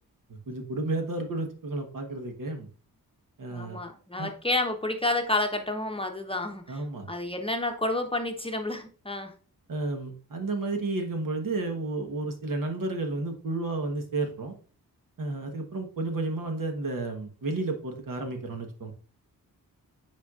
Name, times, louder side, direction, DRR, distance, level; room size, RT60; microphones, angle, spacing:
voice 1, 0.3-2.7 3.4-3.8 4.2-4.3 6.7-7.1 9.7-14.5 15.2-18.9, right 2 dB, 65° right, 4 dB, 1.3 m, -32 dB
voice 2, 3.5-6.8 7.1-9.3, left 2 dB, 15° left, 4 dB, 0.8 m, -30 dB
8.9 x 4.5 x 2.4 m, 0.39 s
wide cardioid pair, 80°, 36 cm